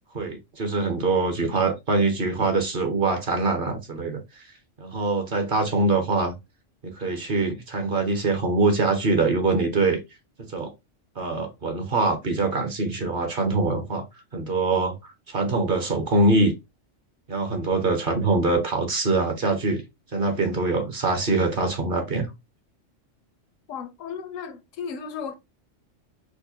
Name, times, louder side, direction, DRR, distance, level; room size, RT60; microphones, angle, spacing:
voice 1, 0.1-4.2 4.8-6.3 6.8-10.0 10.4-10.7 11.2-14.1 14.3-15.0 15.3-16.5 17.3-19.8 20.1-22.3, right 3 dB, 50° right, 0.8 m, -23 dB
voice 2, 23.7-25.3, left 6 dB, 90° left, 1.0 m, -35 dB
4.8 x 2.1 x 2.7 m
omnidirectional pair, 1.3 m